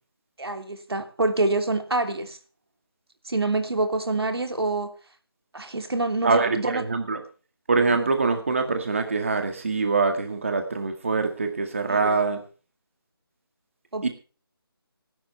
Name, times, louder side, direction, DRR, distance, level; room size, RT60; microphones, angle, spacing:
voice 1, 0.4-2.4 3.2-4.9 5.5-6.8 11.8-12.2 13.9-14.1, right 2 dB, 80° right, 3.1 m, -26 dB
voice 2, 6.2-7.2 7.7-12.4 14.0-14.1, right 4 dB, 35° right, 2.1 m, -24 dB
19.5 x 12.0 x 3.4 m
figure-of-eight pair, 175°, 13 cm